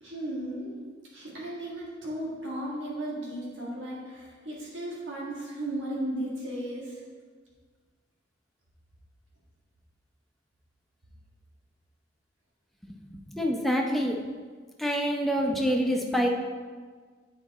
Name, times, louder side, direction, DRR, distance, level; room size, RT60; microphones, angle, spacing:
voice 1, 0.0-0.7 1.1-7.0, right 1 dB, 85° right, -5 dB, 1.6 m, -35 dB
voice 2, 13.1-14.2 14.8-16.3, equal, ahead, 0 dB, 0.6 m, -26 dB
8.1 x 4.1 x 4.1 m, 1.6 s
head